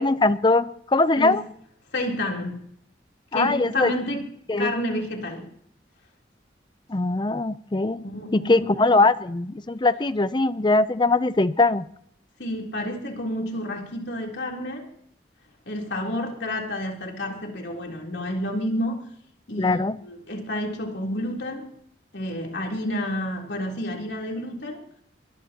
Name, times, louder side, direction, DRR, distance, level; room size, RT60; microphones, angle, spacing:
voice 1, 0.0-1.4 3.3-3.9 4.5-4.7 6.9-8.0 8.3-11.9 19.6-20.0, left 2 dB, 25° left, 14 dB, 0.5 m, -21 dB
voice 2, 1.9-2.6 3.3-4.2 4.6-5.5 8.0-8.9 12.4-14.9 15.7-19.0 19.5-21.7 22.1-24.8, left 1 dB, 70° left, 0 dB, 3.6 m, -30 dB
23.5 x 20.5 x 3.0 m, 0.70 s
head